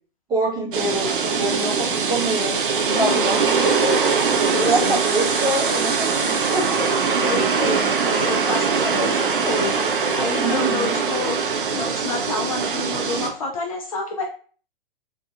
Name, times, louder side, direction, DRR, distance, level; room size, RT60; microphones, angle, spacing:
voice 1, 0.3-2.6 2.9-7.2 8.6-9.1 10.4-11.0, right 1 dB, 15° right, -5 dB, 0.7 m, -26 dB
sound 1, 0.7-13.3, right 5 dB, 65° right, 0.5 m, -22 dB
voice 2, 2.9-3.5 4.5-5.0 7.2-11.4 11.7-14.3, left 3 dB, 40° left, 2 dB, 0.4 m, -28 dB
3.7 x 2.2 x 2.2 m, 0.42 s
figure-of-eight pair, 115°, 29 cm